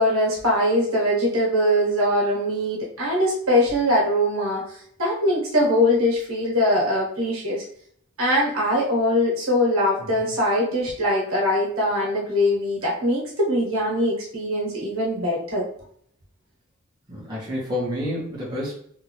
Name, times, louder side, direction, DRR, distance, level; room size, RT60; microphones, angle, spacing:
voice 1, 0.0-7.6 8.2-15.7, left 1 dB, 75° right, -4 dB, 1.6 m, -22 dB
voice 2, 17.1-18.7, left 1 dB, 20° right, -6 dB, 1.3 m, -29 dB
3.7 x 2.6 x 3.1 m, 0.63 s
head